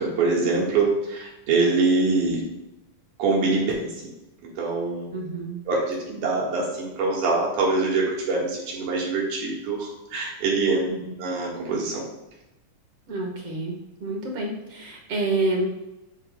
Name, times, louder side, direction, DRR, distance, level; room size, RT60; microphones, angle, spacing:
voice 1, 0.0-2.4 3.2-3.9 4.6-5.1 5.7-10.8 11.2-12.0, right 3 dB, 80° right, -3 dB, 3.1 m, -24 dB
voice 2, 5.1-5.6 10.8-11.1 13.1-15.6, right 2 dB, 50° right, 1 dB, 2.2 m, -28 dB
8.9 x 7.7 x 2.3 m, 0.93 s
omnidirectional pair, 3.5 m